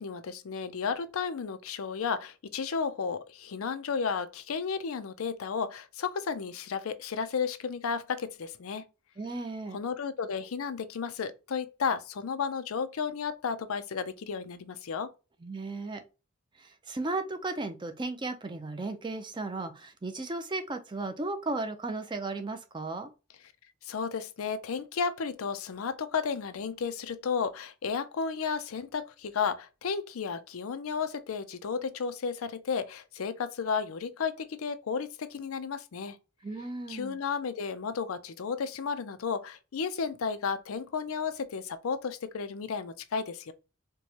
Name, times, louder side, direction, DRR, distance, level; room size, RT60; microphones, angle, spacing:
voice 1, 0.0-8.8 9.7-15.1 23.8-36.2 36.9-43.5, left 5 dB, 85° left, 0.5 m, -33 dB
voice 2, 9.2-9.8 15.4-16.0 16.6-23.1 36.4-37.2, right 3 dB, 20° right, 0.5 m, -35 dB
4.5 x 2.2 x 2.8 m
head